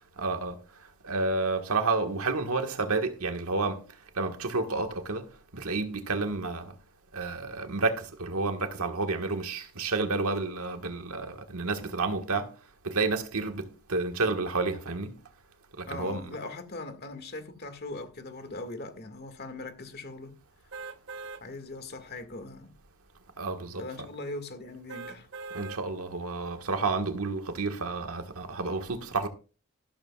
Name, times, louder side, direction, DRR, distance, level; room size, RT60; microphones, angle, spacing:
voice 1, 0.2-0.6 1.0-3.9 4.1-6.7 7.1-12.5 12.8-15.2 15.8-16.2 23.4-23.8 25.5-29.3, right 3 dB, 80° right, 1.6 m, -30 dB
voice 2, 15.8-20.3 21.4-22.7 23.8-25.3, left 2 dB, 45° left, 1.9 m, -40 dB
sound 1, 20.7-21.4 22.0-22.1 24.9-25.8 26.4-26.5, right 4 dB, 55° right, 0.8 m, -41 dB
14.0 x 12.5 x 2.4 m
head